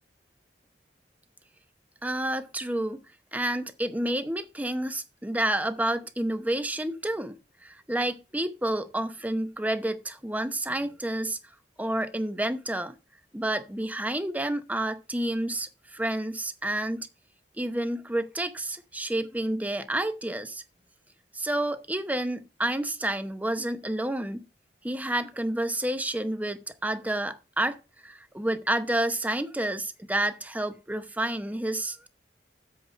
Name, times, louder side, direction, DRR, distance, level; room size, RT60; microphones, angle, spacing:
voice 1, 2.0-3.0 3.3-7.4 7.6-11.4 11.8-13.0 13.3-17.1 17.6-20.6 21.3-24.5 24.8-27.8 28.0-32.1, right 1 dB, 10° right, 0.8 m, -29 dB
7.9 x 4.9 x 7.0 m
head